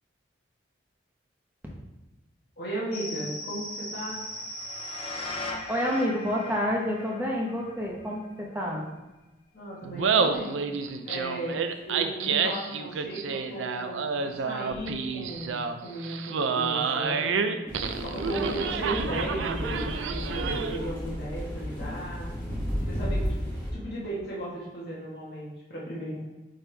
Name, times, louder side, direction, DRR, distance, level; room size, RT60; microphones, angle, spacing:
voice 1, 2.6-4.2 9.5-10.6 11.0-22.3 22.8-23.3 23.7-26.2, right 1 dB, 55° left, -6 dB, 1.4 m, -36 dB
sound 1, 2.9-8.3 8.7-8.8, left 1 dB, 30° left, 0.6 m, -38 dB
voice 2, 5.7-8.8, equal, 10° right, -3 dB, 1.1 m, -28 dB
Laughter, 9.8-20.9, right 5 dB, 85° right, 0.4 m, -29 dB
sound 2, 17.7-23.7, equal, 10° left, 1.4 m, -33 dB
9.0 x 3.3 x 3.4 m, 1.1 s
head